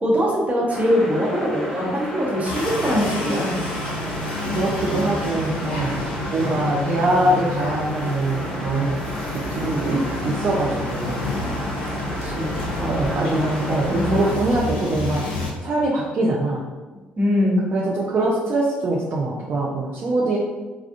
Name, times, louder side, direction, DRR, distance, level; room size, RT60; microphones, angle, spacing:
voice 1, 0.0-3.5 12.2-12.9 13.2-14.1 17.2-17.7, equal, 30° right, -4 dB, 1.1 m, -22 dB
sound 1, 0.7-14.4, equal, 15° left, 0.9 m, -32 dB
sound 2, 2.4-15.5, left 2 dB, 80° left, 0.5 m, -29 dB
voice 2, 4.5-6.0 6.3-9.0 9.5-11.3 12.9-15.2 15.6-16.6 17.7-20.4, right 2 dB, 45° right, -4 dB, 0.5 m, -23 dB
3.4 x 2.3 x 2.5 m, 1.3 s
figure-of-eight pair, 50°, 5 cm